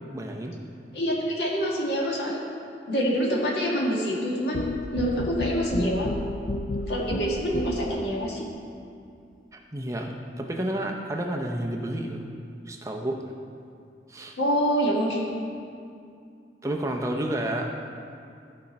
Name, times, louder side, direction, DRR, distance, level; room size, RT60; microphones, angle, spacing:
voice 1, 0.1-0.5 9.5-12.2 12.7-13.2 14.1-14.4 16.6-17.7, right 1 dB, 15° right, 2 dB, 0.5 m, -30 dB
voice 2, 0.9-2.4 2.9-4.7 4.9-6.1 6.9-8.5 14.4-15.2, equal, 75° left, -3 dB, 1.9 m, -26 dB
sound 1, 4.5-8.1, left 2 dB, 50° left, 0.4 m, -31 dB
14.5 x 5.2 x 4.2 m, 2.4 s
head